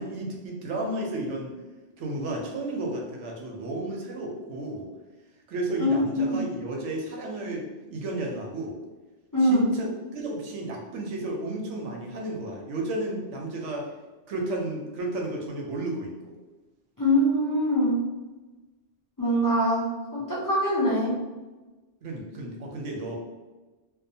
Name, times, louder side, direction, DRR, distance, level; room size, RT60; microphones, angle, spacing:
voice 1, 0.0-1.6 2.0-4.9 5.5-7.6 7.9-8.8 9.4-13.9 14.3-16.3 22.0-23.2, right 2 dB, 85° right, 0 dB, 0.9 m, -32 dB
voice 2, 5.8-6.4 9.3-9.6 17.0-18.0 19.2-19.8 20.1-21.1, equal, 30° left, -9 dB, 0.4 m, -23 dB
2.7 x 2.1 x 2.7 m, 1.2 s
omnidirectional pair, 1.2 m